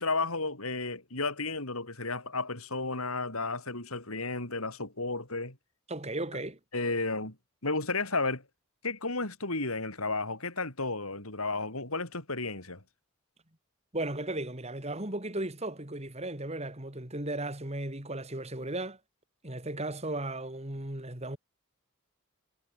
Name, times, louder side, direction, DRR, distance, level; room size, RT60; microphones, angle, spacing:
voice 1, 0.0-5.6 6.7-7.4 7.6-8.4 8.8-12.8, left 3 dB, 80° left, 7.1 m, -33 dB
voice 2, 5.9-6.6 13.9-19.0 19.4-21.4, right 1 dB, 30° right, 3.4 m, -35 dB
head